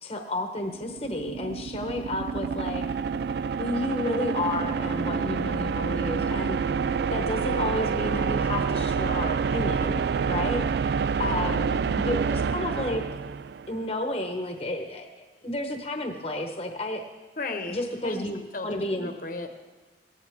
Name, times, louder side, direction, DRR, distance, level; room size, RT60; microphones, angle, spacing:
voice 1, 0.0-2.8 3.6-6.6 7.1-10.0 10.3-10.6 11.2-13.0 13.7-17.1 17.7-19.1, left 1 dB, 35° left, 4 dB, 1.0 m, -31 dB
sound 1, 0.7-13.8, right 5 dB, 60° right, 0.3 m, -28 dB
voice 2, 5.1-5.4 11.2-11.6 17.4-17.8 18.0-18.3 18.5-19.5, left 3 dB, 50° left, 5 dB, 1.1 m, -36 dB
17.5 x 15.5 x 3.6 m, 1.3 s
head